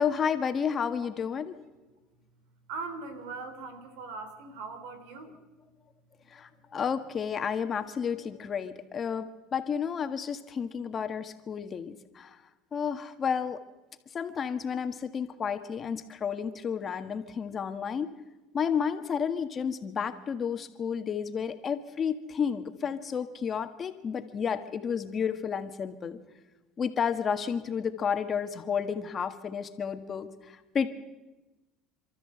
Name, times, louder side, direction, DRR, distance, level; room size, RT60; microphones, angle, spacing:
voice 1, 0.0-1.5 6.3-12.4 12.7-13.6 14.1-18.1 18.5-26.2 26.8-30.9, left 7 dB, 35° left, 7 dB, 1.7 m, -31 dB
voice 2, 2.7-5.4, right 4 dB, 80° right, 10 dB, 3.3 m, -40 dB
27.5 x 13.0 x 7.9 m, 1.1 s
supercardioid pair, 105°, 0 cm